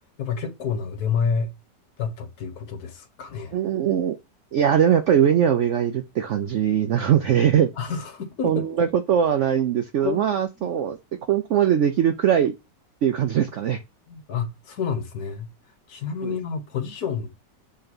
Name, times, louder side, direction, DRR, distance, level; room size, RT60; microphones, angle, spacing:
voice 1, 0.2-1.5 2.0-3.5 7.8-8.6 9.4-9.6 10.0-10.3 10.6-10.7 14.1-15.5 15.9-17.4, left 6 dB, 60° left, 1.5 m, -29 dB
voice 2, 3.5-4.2 4.5-7.7 8.4-11.0 11.3-12.5 13.0-13.8 16.2-16.4, right 9 dB, 85° right, 0.6 m, -21 dB
5.6 x 3.4 x 5.3 m
omnidirectional pair, 1.9 m